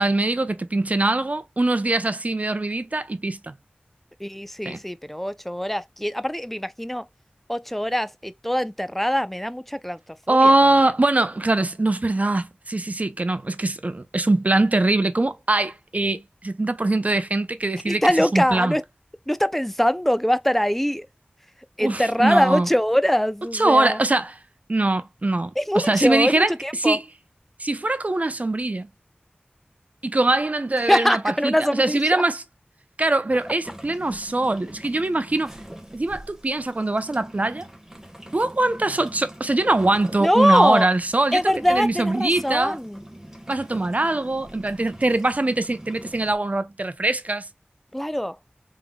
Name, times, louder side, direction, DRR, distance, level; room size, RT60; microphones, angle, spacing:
voice 1, 0.0-3.5 4.7-4.8 10.3-18.0 18.3-18.8 21.8-22.7 23.5-24.4 24.7-26.5 26.8-27.0 27.6-28.9 30.0-32.4 33.0-35.5 35.9-37.7 38.3-41.4 41.7-42.8 43.5-47.5, right 2 dB, 45° right, 0.6 m, -22 dB
voice 2, 4.2-7.0 7.5-10.0 10.3-10.5 17.9-18.8 19.3-21.1 21.8-24.0 25.6-27.0 30.9-32.2 40.2-40.9 41.3-43.0 47.9-48.4, equal, 5° left, 0.4 m, -22 dB
sound 1, 33.3-46.4, right 1 dB, 15° right, 1.1 m, -43 dB
3.6 x 3.5 x 2.2 m
wide cardioid pair, 55°, 3 cm